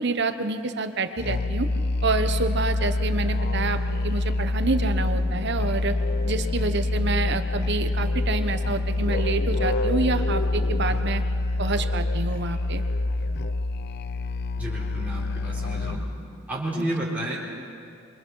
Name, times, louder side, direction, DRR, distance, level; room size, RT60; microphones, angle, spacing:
voice 1, 0.0-1.7 2.0-6.0 6.2-11.2 11.6-12.8 16.8-16.9, right 3 dB, 60° right, 9 dB, 1.1 m, -28 dB
Musical instrument, 1.2-16.2, left 2 dB, 55° left, 0.5 m, -26 dB
voice 2, 14.6-16.0 16.5-17.4, right 1 dB, 10° right, -7 dB, 3.8 m, -31 dB
27.0 x 23.5 x 4.7 m, 2.5 s
head